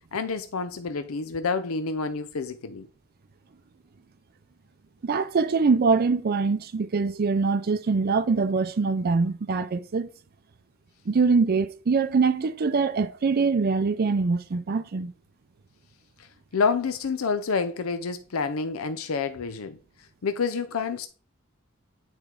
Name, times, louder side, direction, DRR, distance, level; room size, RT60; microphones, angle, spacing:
voice 1, 0.1-2.9 16.2-16.3 16.5-19.8 20.2-21.1, left 5 dB, 90° left, 0.5 m, -28 dB
voice 2, 5.0-10.1 11.1-15.1, right 4 dB, 45° right, 0.5 m, -23 dB
10.0 x 4.4 x 3.7 m
head